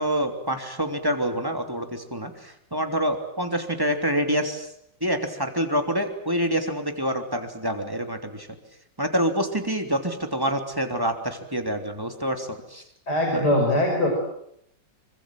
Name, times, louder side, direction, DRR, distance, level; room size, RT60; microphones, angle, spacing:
voice 1, 0.0-4.7 5.0-8.5 9.0-12.8 13.3-13.5, equal, 10° right, 4 dB, 3.2 m, -27 dB
voice 2, 13.1-14.1, left 1 dB, 65° left, 1 dB, 6.1 m, -21 dB
27.0 x 25.0 x 7.8 m, 0.73 s
omnidirectional pair, 1.9 m